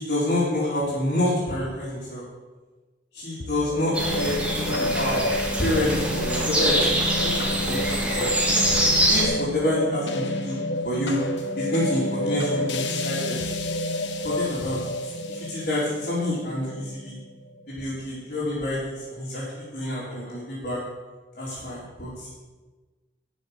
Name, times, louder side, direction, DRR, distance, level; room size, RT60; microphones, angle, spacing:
voice 1, 0.0-2.2 3.1-5.2 5.6-8.3 9.1-10.6 10.8-11.2 11.6-13.4 14.2-14.8 15.3-17.2 17.7-20.8 21.3-22.3, left 1 dB, 50° left, -10 dB, 3.5 m, -28 dB
sound 1, 3.4-17.8, left 1 dB, 90° left, 1.1 m, -29 dB
sound 2, 3.9-9.2, right 1 dB, 5° right, 1.9 m, -24 dB
13.0 x 5.2 x 7.9 m, 1.2 s
head